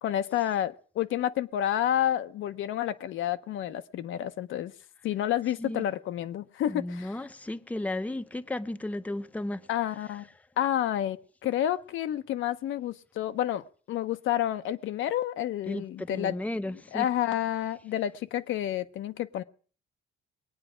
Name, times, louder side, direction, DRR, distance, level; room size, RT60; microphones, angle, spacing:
voice 1, 0.0-4.7 5.0-7.2 9.7-10.3 10.6-11.2 11.4-16.3 16.9-19.4, left 11 dB, 80° left, 0.7 m, -29 dB
voice 2, 6.7-9.7 15.7-17.1, left 1 dB, 5° left, 0.6 m, -34 dB
21.0 x 8.9 x 5.0 m
cardioid pair, 90°, 20 cm